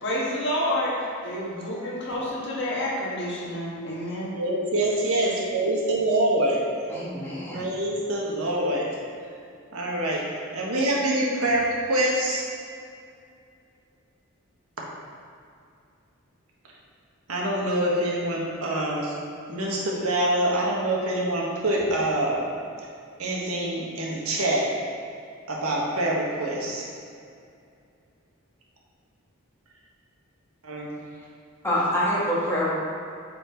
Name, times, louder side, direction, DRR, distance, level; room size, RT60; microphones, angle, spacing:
voice 1, 0.0-4.4, left 1 dB, 55° left, -5 dB, 1.7 m, -29 dB
voice 2, 4.2-6.6 7.5-8.9 9.7-10.3 10.5-12.5 17.3-19.1 19.5-22.5 23.2-24.7 25.5-26.9 30.6-31.0, right 1 dB, 85° right, -3 dB, 1.4 m, -25 dB
voice 3, 6.9-7.6 31.6-32.7, equal, 10° left, -7 dB, 1.5 m, -26 dB
7.8 x 4.4 x 4.5 m, 2.4 s
head